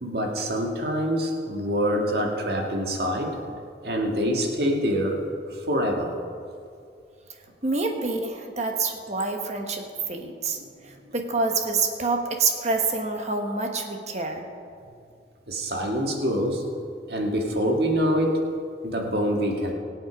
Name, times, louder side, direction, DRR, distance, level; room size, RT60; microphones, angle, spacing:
voice 1, 0.0-3.4 3.8-5.2 5.5-6.1 10.6-10.7 15.5-16.6 17.1-18.4 18.8-19.7, equal, 60° right, 1 dB, 2.0 m, -25 dB
voice 2, 7.6-14.4, right 3 dB, 40° right, 4 dB, 1.4 m, -27 dB
22.5 x 8.0 x 5.2 m, 2.4 s
head